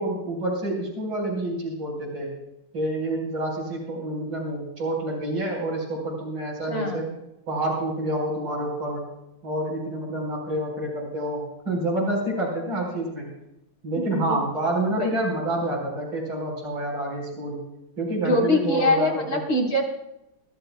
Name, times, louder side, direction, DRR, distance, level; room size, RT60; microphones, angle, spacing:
voice 1, 0.0-2.3 2.7-7.1 7.5-9.1 9.4-13.3 13.8-17.6 18.0-19.4, right 1 dB, 80° right, -4 dB, 5.4 m, -28 dB
voice 2, 6.7-7.0 14.1-14.4 15.0-15.1 18.2-19.8, left 2 dB, 50° left, -2 dB, 4.4 m, -23 dB
27.0 x 13.5 x 2.3 m, 0.88 s
omnidirectional pair, 2.1 m